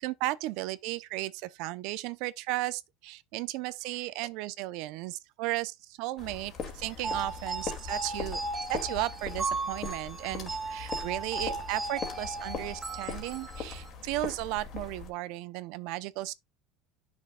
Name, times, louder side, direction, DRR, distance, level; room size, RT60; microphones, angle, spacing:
voice 1, 0.0-8.4 8.7-16.3, right 17 dB, 65° right, 0.6 m, -35 dB
sound 1, 6.2-15.1, left 6 dB, 40° left, 2.1 m, -40 dB
sound 2, 7.0-13.9, right 3 dB, 10° right, 1.4 m, -36 dB
11.0 x 6.3 x 2.3 m
cardioid pair, 150°, 0 cm